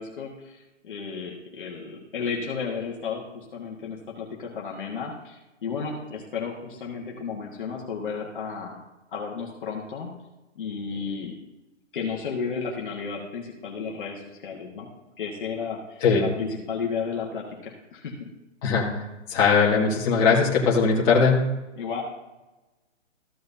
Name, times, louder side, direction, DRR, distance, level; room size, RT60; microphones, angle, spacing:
voice 1, 0.0-8.8 9.1-10.1 10.6-11.3 11.9-14.9 15.2-18.3 21.8-22.0, left 5 dB, 45° left, -2 dB, 1.4 m, -33 dB
voice 2, 19.3-21.4, left 5 dB, 20° left, -5 dB, 1.8 m, -20 dB
14.5 x 7.8 x 2.7 m, 1.1 s
hypercardioid pair, 165°, 37 cm